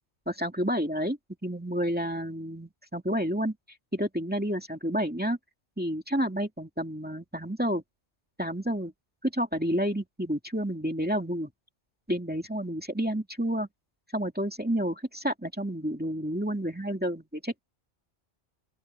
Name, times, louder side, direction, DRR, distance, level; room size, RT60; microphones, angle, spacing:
voice 1, 0.3-3.6 3.9-5.4 5.8-7.8 8.4-8.9 9.2-11.5 12.1-13.7 14.1-17.6, equal, 10° right, 2.2 m, -30 dB
open air
omnidirectional pair, 1.2 m